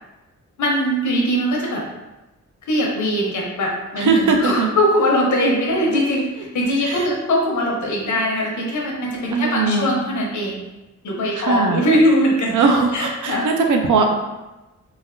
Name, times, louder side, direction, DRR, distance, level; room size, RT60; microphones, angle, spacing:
voice 1, 0.6-1.9 2.7-10.6 11.0-12.6 12.9-13.5, equal, 75° left, -1 dB, 0.7 m, -21 dB
voice 2, 4.0-4.7 6.8-7.1 9.3-9.9 11.3-11.8 12.5-14.1, right 4 dB, 80° right, 3 dB, 0.5 m, -19 dB
3.2 x 2.4 x 2.5 m, 1.0 s
wide cardioid pair, 165°, 30 cm